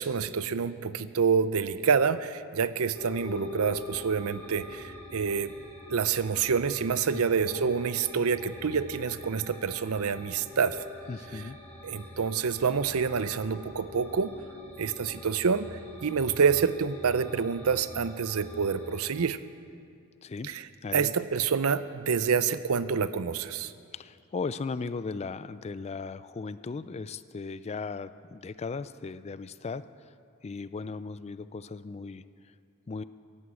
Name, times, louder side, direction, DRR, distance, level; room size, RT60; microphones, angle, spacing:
voice 1, 0.0-5.5 5.9-10.8 11.8-14.3 14.8-15.7 16.0-19.4 20.5-20.7 20.9-23.7, right 6 dB, 70° right, 14 dB, 0.6 m, -27 dB
sound 1, 2.9-19.1, left 3 dB, 10° left, 3.4 m, -45 dB
voice 2, 7.1-7.7 11.1-11.6 20.2-20.5 20.8-21.1 23.9-30.1 30.4-32.2 32.9-33.0, left 4 dB, 30° left, 14 dB, 0.4 m, -37 dB
14.5 x 11.0 x 8.3 m, 2.4 s
head